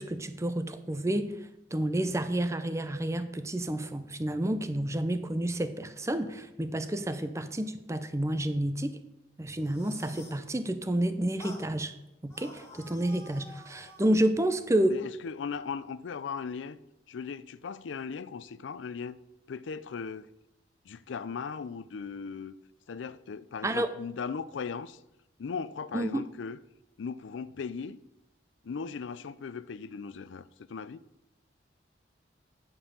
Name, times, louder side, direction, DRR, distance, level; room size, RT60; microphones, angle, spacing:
voice 1, 0.0-1.3 1.7-9.0 9.4-11.9 12.2-15.0 23.6-23.9 25.9-26.2, right 1 dB, 15° right, 0.6 m, -30 dB
sound 1, 9.5-10.5 11.4-11.7 12.3-14.2, left 1 dB, 15° left, 1.6 m, -50 dB
voice 2, 14.9-16.8 17.1-19.2 19.5-20.3 20.8-22.5 22.9-25.0 25.4-26.6 27.0-28.0 28.6-31.0, left 5 dB, 85° left, 0.4 m, -38 dB
9.5 x 5.5 x 6.8 m
head